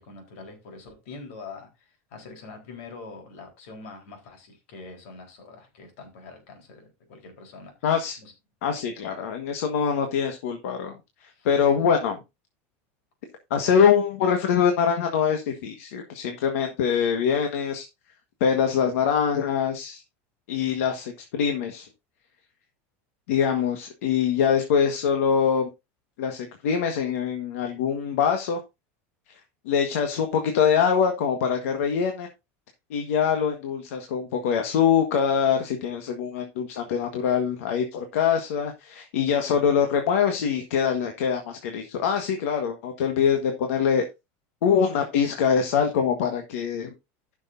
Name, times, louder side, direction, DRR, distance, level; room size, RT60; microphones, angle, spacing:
voice 1, 0.0-7.7 8.2-8.3 11.3-11.5, left 4 dB, 70° left, 3 dB, 4.0 m, -44 dB
voice 2, 7.8-8.2 8.6-10.9 11.2-12.2 13.5-17.9 18.4-20.0 20.5-21.9 23.3-25.7 26.2-28.6 29.3-29.4 29.6-32.3 32.9-44.0 44.6-46.9, left 7 dB, 90° left, 5 dB, 1.4 m, -24 dB
15.5 x 6.3 x 2.6 m, 0.24 s
supercardioid pair, 165°, 7 cm